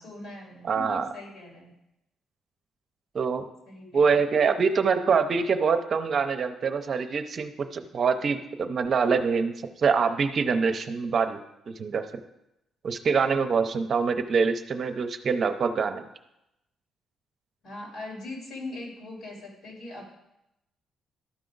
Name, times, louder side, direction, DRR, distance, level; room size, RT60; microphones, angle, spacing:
voice 1, 0.0-1.7 3.7-4.1 17.6-20.1, left 2 dB, 70° left, -3 dB, 3.8 m, -40 dB
voice 2, 0.7-1.1 3.1-3.5 3.9-11.4 11.7-12.2 12.8-16.1, right 5 dB, 50° right, 7 dB, 0.6 m, -25 dB
13.0 x 4.9 x 3.9 m, 0.87 s
cardioid pair, 90°, 0 cm